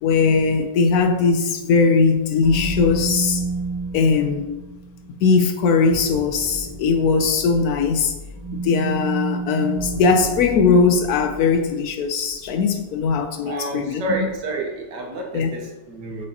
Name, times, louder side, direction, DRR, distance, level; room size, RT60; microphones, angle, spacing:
voice 1, 0.0-3.4 3.9-4.5 5.2-8.1 8.5-14.2 15.3-15.5, left 5 dB, 70° left, 6 dB, 1.0 m, -19 dB
sound 1, 2.4-11.6, right 3 dB, 15° right, 0.6 m, -31 dB
voice 2, 13.4-16.3, right 2 dB, 75° right, 0 dB, 1.8 m, -29 dB
7.7 x 5.0 x 2.9 m, 1.1 s
omnidirectional pair, 1.8 m